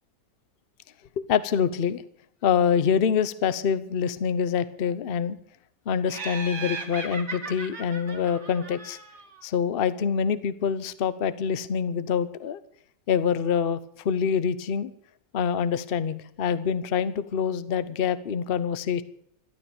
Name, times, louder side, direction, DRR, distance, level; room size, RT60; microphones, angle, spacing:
voice 1, 1.2-2.0 2.4-5.4 5.9-9.0 9.4-12.6 13.1-13.8 14.0-14.9 15.3-19.0, left 7 dB, 45° left, 14 dB, 0.8 m, -25 dB
Laughter, 6.1-9.4, right 4 dB, 40° right, 2.2 m, -37 dB
14.0 x 12.5 x 7.0 m, 0.70 s
omnidirectional pair, 1.8 m